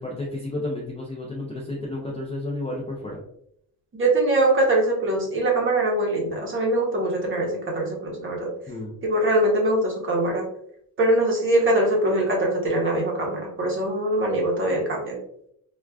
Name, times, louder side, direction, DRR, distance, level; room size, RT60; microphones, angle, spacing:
voice 1, 0.0-3.2 8.7-9.0, left 2 dB, 15° left, -4 dB, 0.3 m, -31 dB
voice 2, 4.0-8.5 9.0-10.4 11.0-15.2, right 1 dB, 30° right, -1 dB, 0.8 m, -22 dB
4.5 x 2.3 x 2.2 m, 0.73 s
cardioid pair, 180°, 39 cm